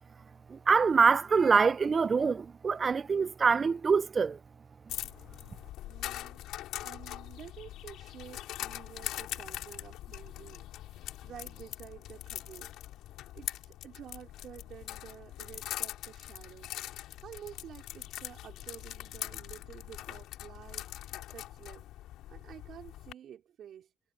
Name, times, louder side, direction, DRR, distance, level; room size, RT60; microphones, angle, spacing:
voice 1, 0.5-4.4, right 5 dB, 40° right, 0.6 m, -25 dB
sound 1, 4.9-23.1, left 14 dB, 90° left, 6.5 m, -42 dB
voice 2, 5.8-6.4 6.8-12.7 13.3-16.8 17.2-21.9 22.3-23.9, right 9 dB, 70° right, 4.3 m, -50 dB
cardioid pair, 90°, 0 cm